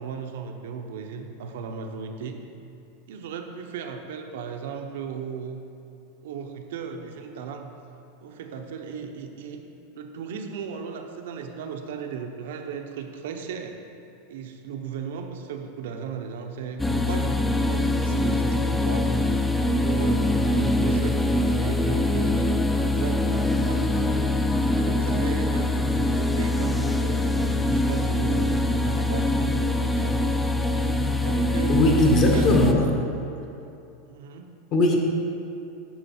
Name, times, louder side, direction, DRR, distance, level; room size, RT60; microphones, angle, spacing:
voice 1, 0.0-2.4 3.1-5.6 6.2-7.7 8.2-9.6 9.9-13.8 14.3-19.1 19.7-23.9 24.7-30.2 31.1-31.8 32.3-32.5 32.8-33.0 34.0-34.5, right 6 dB, 80° right, 5 dB, 0.8 m, -36 dB
sound 1, 16.8-32.7, left 1 dB, 5° left, 0.3 m, -23 dB
voice 2, 31.7-32.9 34.7-34.9, left 2 dB, 40° left, 1 dB, 1.2 m, -19 dB
8.7 x 6.3 x 4.3 m, 2.7 s
supercardioid pair, 160°, 0 cm